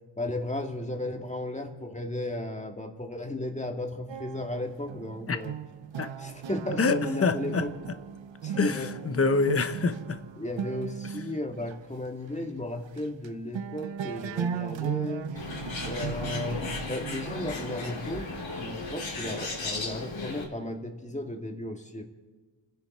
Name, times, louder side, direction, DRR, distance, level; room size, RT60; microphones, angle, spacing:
voice 1, 0.2-5.5 6.2-7.7 8.4-8.9 10.4-15.5 15.8-16.6 16.9-22.0, left 1 dB, 15° left, 3 dB, 1.8 m, -34 dB
sound 1, 4.1-11.8 12.4-12.5 12.8-13.3 13.5-19.1, right 8 dB, 90° right, 0.8 m, -37 dB
voice 2, 6.8-7.7 8.6-10.2 11.0-11.1, left 4 dB, 30° left, 10 dB, 0.9 m, -26 dB
Bird, 15.4-20.4, left 3 dB, 85° left, 3.4 m, -35 dB
29.5 x 10.5 x 4.2 m, 1.3 s
wide cardioid pair, 115°, 44 cm